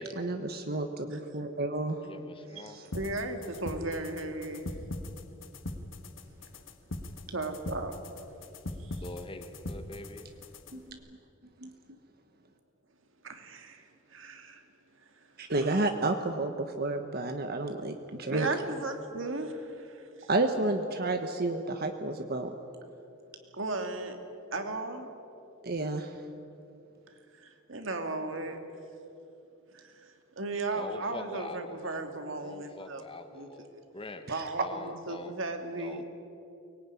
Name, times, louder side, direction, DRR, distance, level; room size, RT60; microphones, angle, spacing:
voice 1, 0.2-2.0 2.6-2.9 10.7-11.0 11.6-11.7 15.4-18.5 20.3-22.5 25.6-26.1 34.3-34.4, right 2 dB, 50° right, 6 dB, 1.2 m, -31 dB
voice 2, 2.0-2.8 9.0-10.3 30.7-32.0 32.4-33.7 33.9-34.2 34.6-35.3 35.8-36.0, left 2 dB, 25° left, 8 dB, 1.5 m, -43 dB
sound 1, 2.9-10.9, left 2 dB, 70° left, 1.6 m, -41 dB
voice 3, 2.9-4.7 7.3-7.9 8.8-9.0 13.2-14.6 15.0-15.1 15.6-15.8 18.3-20.3 23.5-24.2 24.5-25.1 27.3-28.6 29.7-33.0 33.3-33.8 34.3-36.0, right 2 dB, 65° right, 5 dB, 2.5 m, -36 dB
23.5 x 19.0 x 9.9 m, 2.8 s
head